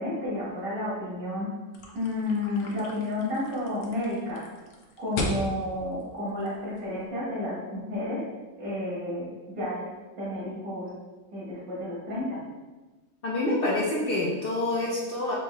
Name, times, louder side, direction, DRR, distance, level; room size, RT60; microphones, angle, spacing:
voice 1, 0.0-1.5 1.9-4.5 5.0-8.3 8.6-9.9 10.2-10.9 11.3-12.4, left 1 dB, 85° right, -6 dB, 1.8 m, -31 dB
sound 1, 1.7-7.1, left 2 dB, 90° left, 1.1 m, -37 dB
voice 2, 13.2-15.4, left 2 dB, 60° left, -4 dB, 0.6 m, -27 dB
4.4 x 2.8 x 3.1 m, 1.2 s
omnidirectional pair, 1.5 m